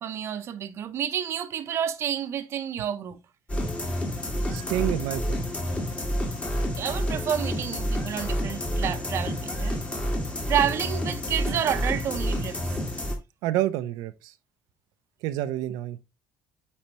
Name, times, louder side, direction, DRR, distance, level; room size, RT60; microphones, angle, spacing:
voice 1, 0.0-3.2 6.8-9.8 10.5-12.8, right 9 dB, 40° right, 0.7 m, -29 dB
sound 1, 3.5-13.2, equal, 20° left, 1.6 m, -29 dB
voice 2, 4.5-5.4 13.4-14.3 15.2-16.0, right 13 dB, 85° right, 0.5 m, -28 dB
8.7 x 4.2 x 2.9 m
cardioid pair, 155°, 6 cm